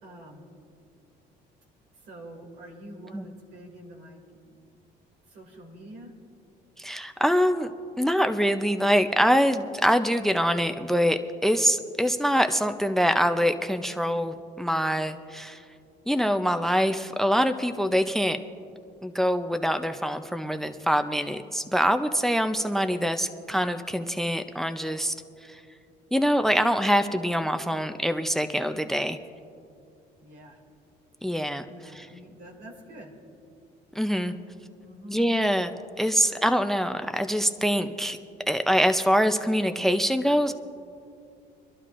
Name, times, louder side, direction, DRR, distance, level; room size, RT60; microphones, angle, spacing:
voice 1, 0.0-0.4 2.0-4.2 5.3-6.1 30.2-30.6 31.7-33.1 34.8-35.2 36.2-36.4, right 1 dB, 85° right, 1 dB, 2.6 m, -46 dB
voice 2, 6.8-7.7 8.0-15.6 16.1-18.4 19.0-25.1 25.5-25.6 26.1-29.2 31.2-31.7 31.9-32.1 34.0-34.4 35.1-38.2 38.5-40.5, equal, ahead, 9 dB, 0.5 m, -24 dB
25.5 x 12.0 x 2.5 m, 2.4 s
cardioid pair, 110°, 17 cm